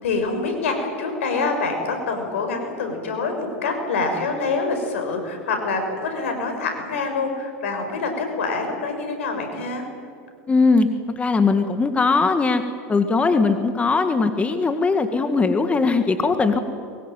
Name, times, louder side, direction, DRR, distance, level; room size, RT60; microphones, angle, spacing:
voice 1, 0.0-9.8, left 3 dB, 80° left, 5 dB, 6.3 m, -26 dB
voice 2, 10.5-12.6 12.9-16.6, left 4 dB, 20° left, 8 dB, 1.9 m, -20 dB
23.5 x 22.0 x 9.3 m, 2.5 s
hypercardioid pair, 100°, 7 cm